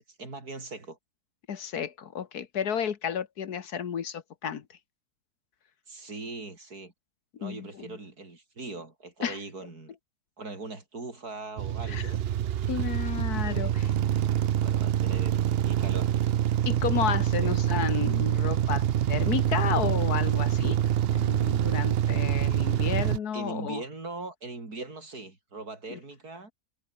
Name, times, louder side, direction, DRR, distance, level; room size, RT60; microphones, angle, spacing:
voice 1, 0.2-1.0 5.9-6.9 7.4-9.9 10.4-12.2 13.4-14.0 14.6-16.1 17.4-17.5 23.3-26.5, right 3 dB, 80° right, 5.1 m, -40 dB
voice 2, 1.5-4.6 7.4-7.9 9.2-9.4 11.9-12.1 12.7-13.9 16.7-20.8 21.1-23.8 25.9-26.0, left 8 dB, 80° left, 1.9 m, -32 dB
sound 1, 11.6-23.2, right 10 dB, 60° right, 0.6 m, -26 dB
omnidirectional pair, 1.6 m